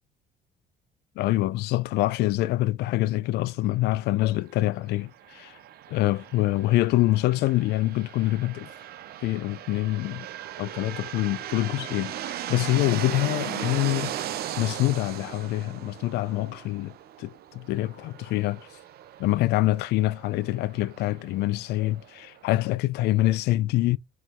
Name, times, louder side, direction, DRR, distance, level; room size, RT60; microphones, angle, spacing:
voice 1, 1.2-5.6 5.9-8.7 9.2-10.3 10.6-14.1 14.6-18.7 19.2-24.0, left 17 dB, 75° left, 0.4 m, -25 dB
sound 1, 5.1-22.7, right 11 dB, 65° right, 0.9 m, -38 dB
6.2 x 3.5 x 4.4 m
cardioid pair, 110°, 17 cm